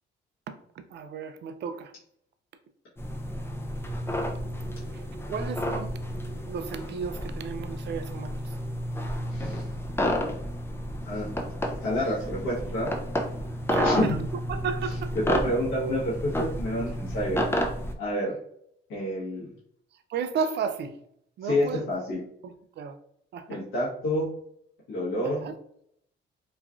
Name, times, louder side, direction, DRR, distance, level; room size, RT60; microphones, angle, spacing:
voice 1, 0.5-1.9 4.9-5.0 5.3-5.9 6.5-8.5 13.7-14.2 14.5-15.1 20.1-21.0 21.4-21.9 22.4-23.0 23.3-23.6 25.2-25.5, right 6 dB, 60° right, 10 dB, 0.4 m, -34 dB
sound 1, 3.0-17.9, equal, 10° left, 0.4 m, -31 dB
voice 2, 9.3-9.7 11.0-11.3 11.8-13.0 13.8-14.2 15.1-17.4 18.0-18.4 18.9-19.5 21.4-22.2 23.5-24.3 24.9-25.5, left 1 dB, 85° left, -7 dB, 1.0 m, -28 dB
3.0 x 2.4 x 2.3 m, 0.70 s
cardioid pair, 90°, 20 cm